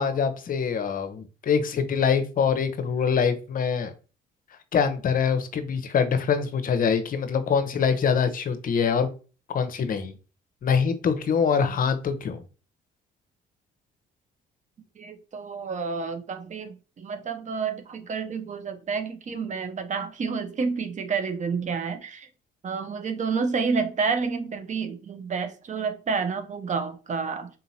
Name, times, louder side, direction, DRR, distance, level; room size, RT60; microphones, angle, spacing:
voice 1, 0.0-3.9 4.7-9.1 9.5-10.1 10.6-12.4, left 6 dB, 50° left, 0.7 m, -24 dB
voice 2, 15.0-22.3 22.6-27.5, right 5 dB, 40° right, 0.7 m, -29 dB
3.8 x 2.8 x 2.7 m
supercardioid pair, 60°, 19 cm